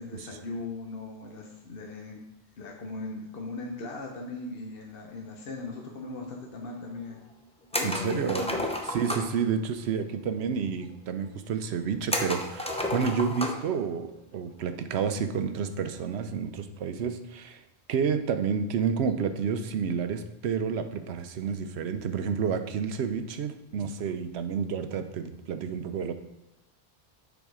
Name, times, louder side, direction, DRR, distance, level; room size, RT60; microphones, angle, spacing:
voice 1, 0.0-2.2 2.6-7.2 7.7-8.6, left 3 dB, 60° left, 0 dB, 1.0 m, -38 dB
sound 1, 7.7-9.4 12.1-13.7 14.1-14.2 15.8-16.1, left 1 dB, 5° left, 0.5 m, -31 dB
voice 2, 7.8-8.4 8.9-17.6 17.9-26.1, right 6 dB, 80° right, 9 dB, 0.9 m, -30 dB
7.0 x 4.1 x 4.8 m, 0.98 s
omnidirectional pair, 1.1 m